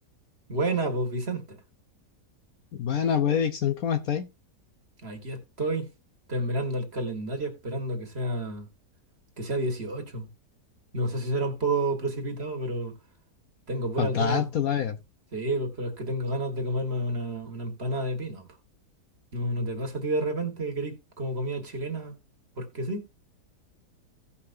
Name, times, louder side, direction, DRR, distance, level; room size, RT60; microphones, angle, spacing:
voice 1, 0.5-1.6 5.0-5.9 6.3-8.7 9.4-10.3 10.9-12.9 13.7-14.5 15.3-18.5 19.3-22.2 22.6-23.0, right 1 dB, 40° right, 1.7 m, -30 dB
voice 2, 2.7-4.3 14.0-15.0, left 8 dB, 65° left, 1.1 m, -26 dB
16.5 x 5.7 x 2.6 m
omnidirectional pair, 1.8 m